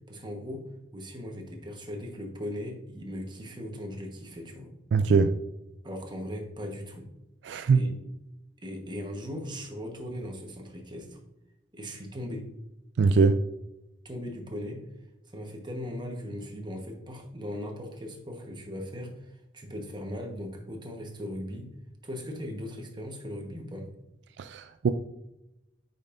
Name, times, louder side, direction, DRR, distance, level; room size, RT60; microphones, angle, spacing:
voice 1, 0.1-4.7 5.8-7.1 7.7-8.0 8.6-11.2 11.7-12.5 14.0-14.8 15.3-21.7 22.0-23.9, equal, 25° right, 2 dB, 1.2 m, -38 dB
voice 2, 4.9-5.3 7.4-7.8 13.0-13.4 24.4-24.9, right 4 dB, 70° right, 10 dB, 0.3 m, -22 dB
9.0 x 5.4 x 2.6 m, 0.91 s
head